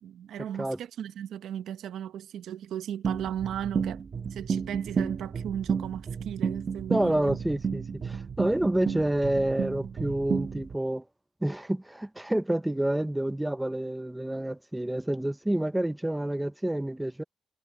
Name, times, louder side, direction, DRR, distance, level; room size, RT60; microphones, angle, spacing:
voice 1, 0.0-4.0 4.3-7.4, right 10 dB, 85° right, 1.1 m, -36 dB
sound 1, 3.0-10.8, right 6 dB, 40° right, 1.5 m, -32 dB
voice 2, 6.9-11.0 11.4-17.2, right 1 dB, 5° right, 0.7 m, -28 dB
cardioid pair, 135°, 0 cm